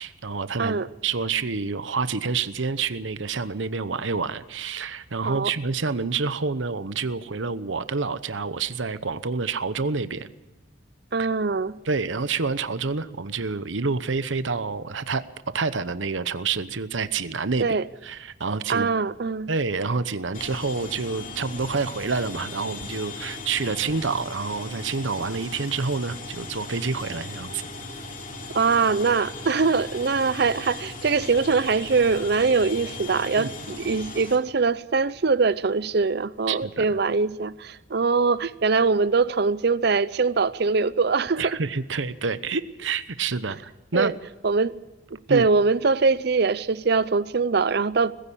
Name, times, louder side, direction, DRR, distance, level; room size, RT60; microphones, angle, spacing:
voice 1, 0.0-10.3 11.8-15.2 15.5-18.9 19.5-27.6 33.4-33.5 36.5-37.0 41.4-43.6 43.9-44.1 45.3-45.4, right 4 dB, 75° right, 0.9 m, -28 dB
voice 2, 11.1-11.8 17.6-17.8 18.7-19.5 28.5-41.5 43.9-44.1 44.4-44.8 45.3-48.1, right 4 dB, 55° right, 0.6 m, -22 dB
sound 1, 20.3-34.4, left 3 dB, 45° left, 3.5 m, -38 dB
20.5 x 15.5 x 8.6 m
head